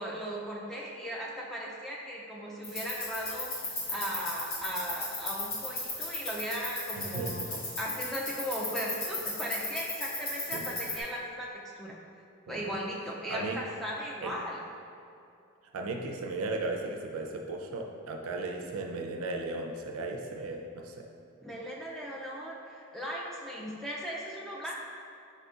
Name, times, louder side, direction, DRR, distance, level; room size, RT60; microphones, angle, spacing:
voice 1, 0.0-3.5 3.9-12.0 12.5-14.6 21.4-24.7, equal, ahead, -4 dB, 0.3 m, -37 dB
sound 1, 2.6-11.0, left 2 dB, 70° left, 1.3 m, -36 dB
voice 2, 7.0-7.5 10.5-10.7 12.5-12.7 13.3-13.6 14.2-14.4 15.7-21.1, right 2 dB, 80° right, 2 dB, 0.4 m, -36 dB
4.3 x 3.7 x 2.4 m, 2.6 s
head